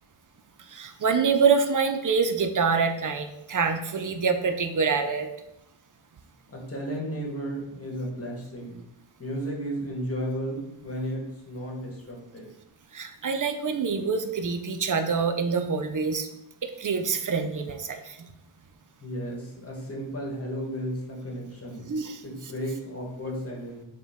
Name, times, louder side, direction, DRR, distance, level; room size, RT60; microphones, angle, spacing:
voice 1, 0.6-5.3 12.9-16.3 16.6-18.3 21.9-22.5, right 5 dB, 40° right, 6 dB, 0.4 m, -26 dB
voice 2, 6.5-8.8 9.2-12.5 19.0-21.9 22.2-23.8, equal, 30° left, -2 dB, 1.1 m, -34 dB
5.0 x 2.2 x 3.4 m, 0.83 s
wide cardioid pair, 70°, 50 cm